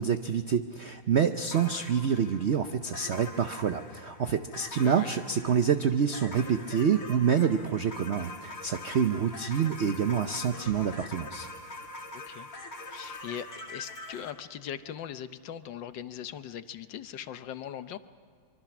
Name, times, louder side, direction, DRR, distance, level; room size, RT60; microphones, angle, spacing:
voice 1, 0.0-11.5, right 7 dB, 70° right, 9 dB, 0.6 m, -27 dB
sound 1, 1.5-14.3, left 2 dB, 45° left, 2.5 m, -44 dB
voice 2, 12.1-12.5 12.9-18.0, left 9 dB, 70° left, 11 dB, 1.5 m, -40 dB
25.0 x 24.0 x 6.0 m, 2.2 s
omnidirectional pair, 2.1 m